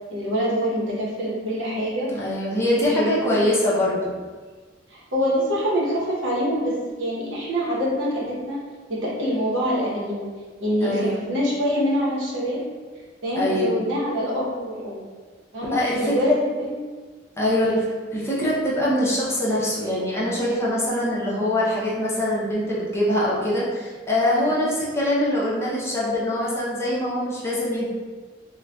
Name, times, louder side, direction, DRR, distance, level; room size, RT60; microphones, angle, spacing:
voice 1, 0.1-2.1 2.5-3.4 4.9-8.6 8.9-10.3 10.6-12.6 13.2-15.1 15.5-15.8 16.0-16.8 17.6-17.8, equal, 85° right, -5 dB, 0.8 m, -25 dB
voice 2, 2.1-4.1 10.8-11.3 13.4-13.7 15.7-16.3 17.4-17.8 18.1-27.9, left 1 dB, 15° left, -7 dB, 0.6 m, -23 dB
3.7 x 2.2 x 2.2 m, 1.4 s
head